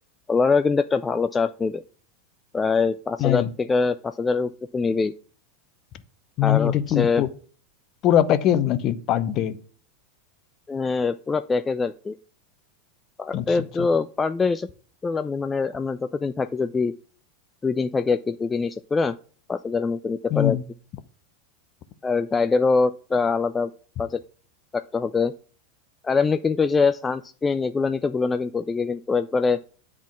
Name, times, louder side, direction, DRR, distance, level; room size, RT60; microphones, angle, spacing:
voice 1, 0.3-1.8 2.5-5.1 6.4-7.2 10.7-12.2 13.2-14.7 15.0-16.9 17.6-19.2 19.5-20.6 22.0-23.7 24.0-24.2 24.7-25.3 26.0-29.6, left 4 dB, 15° left, 0.3 m, -23 dB
voice 2, 6.4-7.3 8.0-9.6 13.3-13.4 13.8-13.9 20.3-20.6, left 11 dB, 40° left, 0.7 m, -21 dB
10.0 x 3.7 x 6.0 m
figure-of-eight pair, 85°, 0 cm